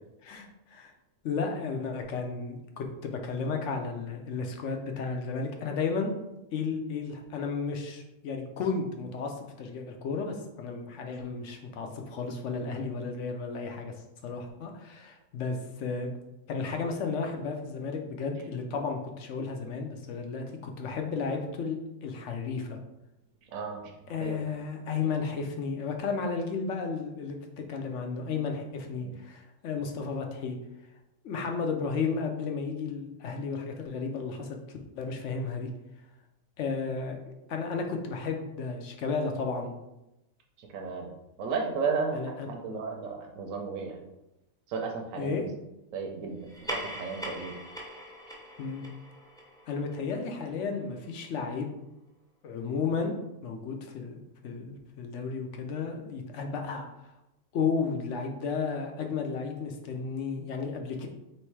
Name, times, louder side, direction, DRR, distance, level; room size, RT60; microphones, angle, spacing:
voice 1, 0.2-0.9 1.2-6.1 6.5-13.9 14.2-16.1 16.5-22.8 24.1-30.6 31.2-35.7 36.6-37.2 37.5-39.7 42.1-42.5 45.2-45.4 48.6-48.8 49.7-51.7 52.4-53.2 53.4-54.2 54.4-57.1 57.5-61.1, left 5 dB, 65° left, 3 dB, 1.0 m, -33 dB
voice 2, 23.5-23.8 24.2-24.4 29.0-29.1 40.7-41.1 41.4-43.9 44.7-45.4 45.9-46.4 46.7-47.5, right 5 dB, 85° right, 1 dB, 1.0 m, -33 dB
sound 1, 46.4-51.3, equal, 5° left, 0.4 m, -42 dB
3.2 x 3.1 x 4.6 m, 0.92 s
omnidirectional pair, 1.4 m